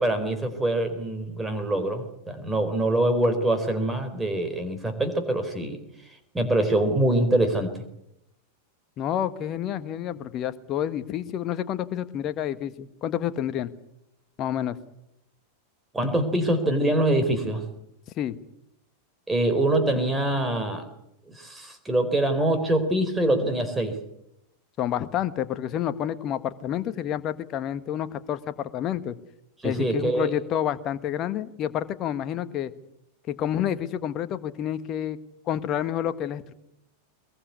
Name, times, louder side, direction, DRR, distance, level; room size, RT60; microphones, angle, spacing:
voice 1, 0.0-5.8 6.3-7.8 15.9-17.6 19.3-20.9 21.3-24.0 29.6-30.4, right 1 dB, 10° right, 7 dB, 4.4 m, -24 dB
voice 2, 9.0-13.7 14.4-14.7 18.2-18.4 24.8-29.1 29.6-32.7 33.3-35.2 35.5-36.5, left 10 dB, 35° left, 12 dB, 1.5 m, -29 dB
22.5 x 22.0 x 8.4 m, 0.81 s
figure-of-eight pair, 90°, 0 cm